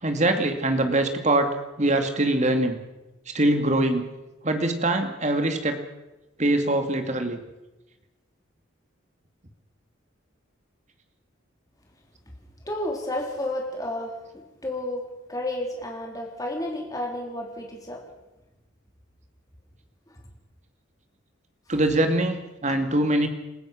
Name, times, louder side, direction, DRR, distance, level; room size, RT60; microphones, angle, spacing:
voice 1, 0.0-1.5 1.8-2.8 3.3-4.1 4.4-5.8 6.4-7.4 21.7-23.3, right 1 dB, 35° right, 6 dB, 2.3 m, -23 dB
voice 2, 12.7-14.2 14.6-15.0 15.3-18.0 22.7-22.8, left 1 dB, 20° left, 0 dB, 3.8 m, -31 dB
28.0 x 15.5 x 6.3 m, 1.0 s
head